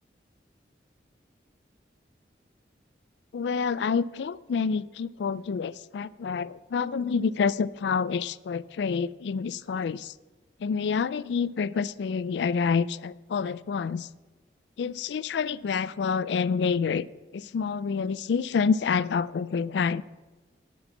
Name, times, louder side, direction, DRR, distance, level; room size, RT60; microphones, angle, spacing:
voice 1, 3.3-10.1 10.6-14.1 14.8-17.0 17.3-20.0, left 5 dB, 80° left, 0.3 m, -28 dB
11.5 x 6.2 x 7.0 m
head